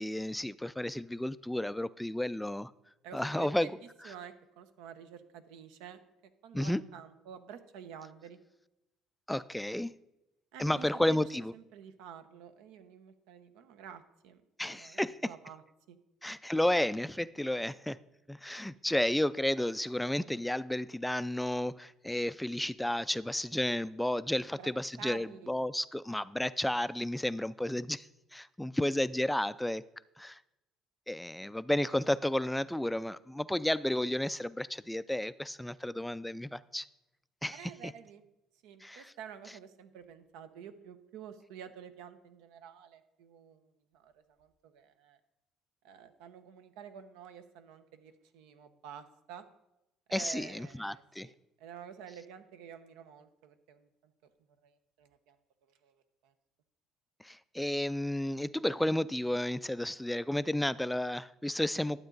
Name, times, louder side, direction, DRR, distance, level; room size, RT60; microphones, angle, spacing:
voice 1, 0.0-2.7 3.1-3.7 6.5-6.8 9.3-9.9 10.6-11.5 14.6-15.3 16.2-18.0 18.3-29.8 30.2-30.4 31.1-36.9 37.4-37.7 38.8-39.1 50.1-51.3 57.2-62.0, left 1 dB, 5° left, 0.3 m, -32 dB
voice 2, 3.0-3.7 4.0-6.0 6.4-8.4 10.5-14.4 14.7-15.6 15.9-16.0 24.2-24.7 25.0-25.5 37.5-38.2 38.6-43.6 43.9-45.2 45.8-49.4 50.1-51.3 51.6-54.1 54.6-55.4 55.8-55.9 56.2-56.3, right 8 dB, 85° right, 0.8 m, -50 dB
12.0 x 7.8 x 3.9 m
cardioid pair, 100°, 0 cm